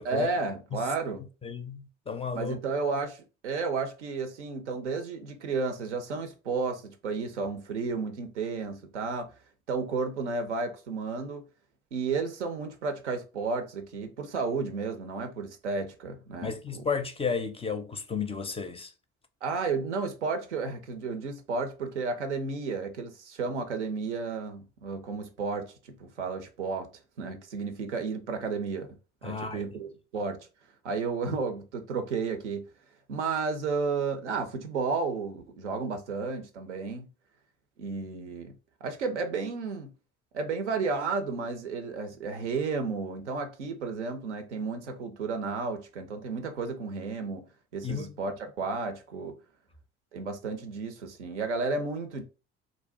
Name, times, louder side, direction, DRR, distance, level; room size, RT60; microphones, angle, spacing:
voice 1, 0.0-1.3 2.3-9.3 9.7-11.4 11.9-16.8 19.4-26.9 27.2-28.9 29.2-30.5 30.8-32.6 33.1-37.1 37.8-38.5 38.8-39.9 40.3-47.5 47.7-49.4 50.1-52.2, right 4 dB, 85° right, 0.5 m, -32 dB
voice 2, 1.4-2.6 16.4-18.9 29.2-29.6 47.8-48.1, left 5 dB, 15° left, 0.4 m, -33 dB
2.4 x 2.1 x 3.6 m
figure-of-eight pair, 50°, 34 cm